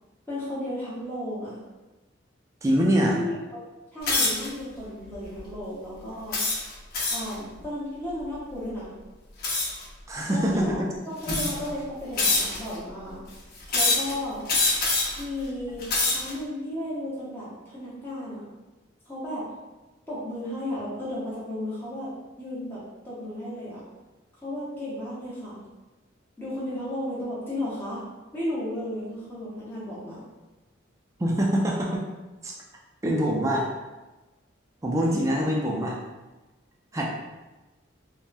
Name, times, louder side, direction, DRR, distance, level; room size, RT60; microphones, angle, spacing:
voice 1, 0.3-1.6 3.1-3.4 3.9-6.4 7.1-8.9 10.3-13.2 13.7-14.5 15.2-18.4 19.1-19.5 20.1-23.8 24.4-25.6 26.4-28.0 28.3-30.3, left 1 dB, 10° left, -11 dB, 0.8 m, -34 dB
voice 2, 2.6-3.2 10.1-10.9 31.2-32.0 32.4-32.5 33.0-33.7 34.8-36.0 36.9-37.1, equal, 15° right, -2 dB, 0.3 m, -24 dB
sound 1, 4.0-4.5 5.1-5.4 6.3-7.3 9.4-9.8 10.7-10.8 11.2-11.7 12.2-12.8 13.7-14.1 14.5-15.2 15.7-16.3, left 3 dB, 50° left, 0.8 m, -24 dB
3.3 x 2.1 x 2.5 m, 1.1 s
head